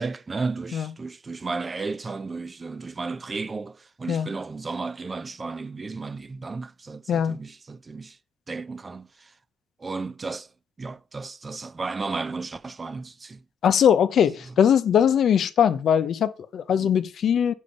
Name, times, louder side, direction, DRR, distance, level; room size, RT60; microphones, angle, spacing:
voice 1, 0.0-8.2 8.5-9.3 9.8-10.5 10.8-13.4 16.8-17.0, right 4 dB, 30° right, 0.6 m, -33 dB
voice 2, 13.6-17.5, left 8 dB, 65° left, 0.7 m, -21 dB
8.6 x 6.4 x 5.3 m
cardioid pair, 90°, 0 cm